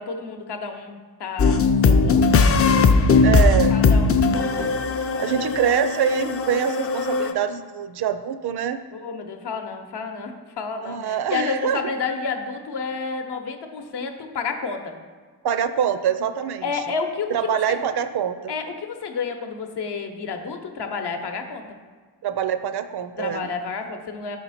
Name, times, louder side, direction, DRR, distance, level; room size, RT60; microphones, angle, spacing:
voice 1, 0.0-2.5 3.7-4.5 5.1-5.5 8.9-14.9 16.6-17.8 18.5-21.6 23.2-24.4, left 5 dB, 60° left, 5 dB, 0.8 m, -30 dB
sound 1, 1.4-7.3, left 4 dB, 35° left, 0.4 m, -19 dB
voice 2, 3.2-3.9 4.3-4.8 5.2-8.8 10.8-12.0 15.4-16.6 17.3-18.5 22.2-23.5, right 8 dB, 60° right, 10 dB, 0.5 m, -25 dB
5.6 x 4.5 x 4.1 m, 1.5 s
cardioid pair, 60°, 45 cm